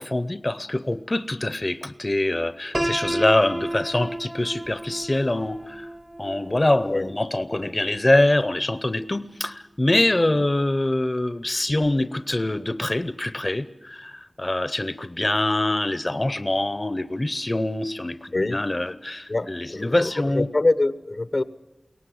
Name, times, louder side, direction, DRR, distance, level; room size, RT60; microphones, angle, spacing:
voice 1, 0.0-5.9 6.2-20.5, left 1 dB, 40° left, 14 dB, 0.7 m, -24 dB
Piano, 2.7-8.6, right 1 dB, 25° right, 0.7 m, -32 dB
voice 2, 19.3-21.4, left 2 dB, 75° left, 14 dB, 0.9 m, -25 dB
22.5 x 18.0 x 7.8 m, 0.97 s
wide cardioid pair, 50°, 0 cm